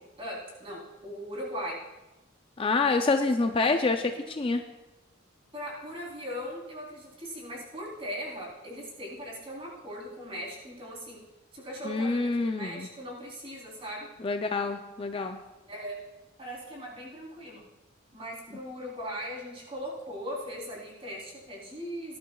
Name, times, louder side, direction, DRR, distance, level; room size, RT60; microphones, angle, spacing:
voice 1, 0.2-1.8 3.1-3.2 3.7-3.8 4.2-4.3 5.5-11.2 11.5-14.1 15.7-16.0 16.4-17.6 18.1-22.2, equal, 30° right, -4 dB, 3.5 m, -39 dB
voice 2, 2.6-4.6 11.8-12.9 14.2-15.4, left 3 dB, 25° left, 6 dB, 0.4 m, -27 dB
19.0 x 11.5 x 2.3 m, 1.0 s
head